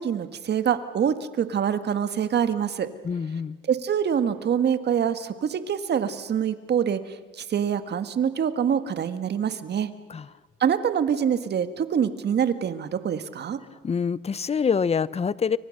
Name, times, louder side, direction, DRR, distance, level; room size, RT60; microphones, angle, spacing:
voice 1, 0.0-2.9 3.7-7.0 7.4-9.9 10.6-13.6, right 8 dB, 55° right, 10 dB, 1.7 m, -25 dB
voice 2, 3.0-3.6 10.1-10.3 13.8-15.6, left 6 dB, 30° left, 19 dB, 0.7 m, -25 dB
29.5 x 24.0 x 6.6 m, 1.3 s
cardioid pair, 90°, 20 cm